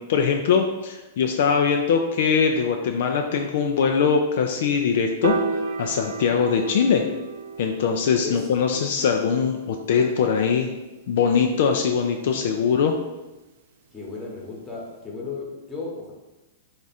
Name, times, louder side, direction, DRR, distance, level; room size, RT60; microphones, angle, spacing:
voice 1, 0.0-5.4 5.8-7.1 7.6-10.7 11.1-12.9, left 6 dB, 65° left, 4 dB, 0.3 m, -22 dB
Piano, 5.2-11.5, right 5 dB, 65° right, 0.4 m, -33 dB
voice 2, 13.9-16.1, left 4 dB, 15° left, -3 dB, 1.0 m, -34 dB
3.5 x 2.4 x 4.1 m, 1.0 s
hypercardioid pair, 140°, 0 cm